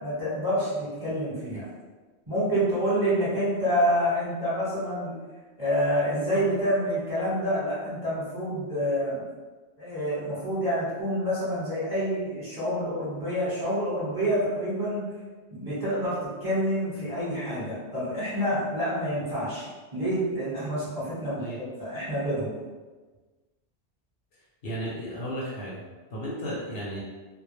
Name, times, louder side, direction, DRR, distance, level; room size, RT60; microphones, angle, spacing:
voice 1, 0.0-1.7 2.3-5.2 5.6-9.2 9.8-15.1 15.5-22.6, equal, 20° right, -10 dB, 0.9 m, -28 dB
voice 2, 24.6-25.8 26.1-27.0, equal, 65° left, -5 dB, 0.8 m, -34 dB
2.2 x 2.1 x 3.1 m, 1.3 s
omnidirectional pair, 1.2 m